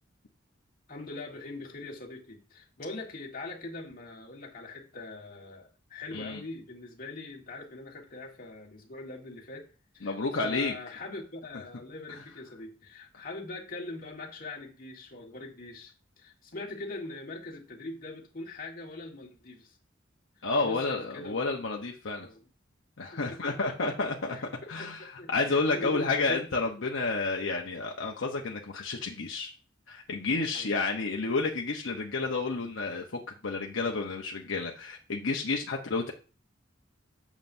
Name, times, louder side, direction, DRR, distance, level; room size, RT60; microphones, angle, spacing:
voice 1, 0.9-19.8 20.6-21.6 22.2-22.5 23.1-24.0 24.3-26.4 30.5-31.0, left 2 dB, 50° left, 0 dB, 1.7 m, -42 dB
voice 2, 6.1-6.4 10.0-10.7 20.4-22.3 23.0-24.4 24.7-29.5 29.9-33.0 33.4-36.1, left 3 dB, 75° left, 0 dB, 0.9 m, -30 dB
7.4 x 7.2 x 2.7 m, 0.35 s
head